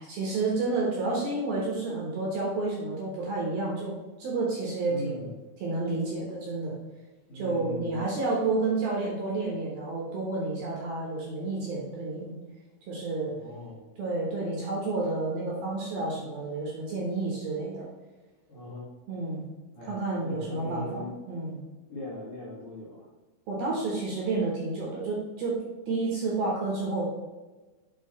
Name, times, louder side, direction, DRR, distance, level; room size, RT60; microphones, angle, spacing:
voice 1, 0.0-5.3 5.6-6.7 7.4-12.3 12.9-13.3 14.0-17.9 19.1-19.4 19.9-21.6 23.5-25.6 25.9-27.0, right 3 dB, 70° right, -4 dB, 2.5 m, -30 dB
voice 2, 4.9-5.3 7.3-8.1 13.3-13.9 18.5-18.9 19.7-21.1 21.9-23.1, left 1 dB, 60° left, -10 dB, 1.3 m, -40 dB
7.8 x 4.9 x 3.1 m, 1.2 s
omnidirectional pair, 5.6 m